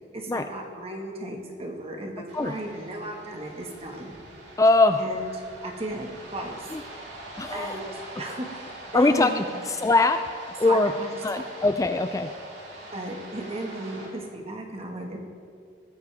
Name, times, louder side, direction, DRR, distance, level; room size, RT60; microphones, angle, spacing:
voice 1, 0.1-4.1 5.0-5.3 5.6-6.7 7.5-9.6 10.6-11.4 12.9-15.2, right 1 dB, 35° right, 2 dB, 1.8 m, -35 dB
sound 1, 2.3-14.1, right 1 dB, 70° right, 3.5 m, -43 dB
voice 2, 4.6-5.0 6.7-6.8 7.4-8.0 8.9-10.9 11.2-12.3, left 2 dB, 20° left, 8 dB, 0.4 m, -22 dB
20.5 x 14.5 x 3.6 m, 2.4 s
head